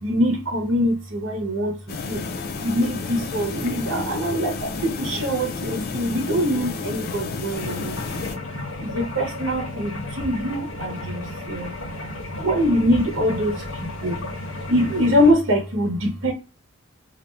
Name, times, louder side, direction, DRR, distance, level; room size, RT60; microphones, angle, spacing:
voice 1, 0.0-2.2 2.6-8.0 8.3-8.4 8.8-11.7 12.4-14.2 14.7-16.3, equal, 75° right, 0.9 m, -23 dB
sound 1, 1.9-8.4, left 4 dB, 50° left, 0.4 m, -31 dB
sound 2, 7.5-15.3, left 2 dB, 85° left, 0.9 m, -34 dB
2.5 x 2.1 x 3.2 m
head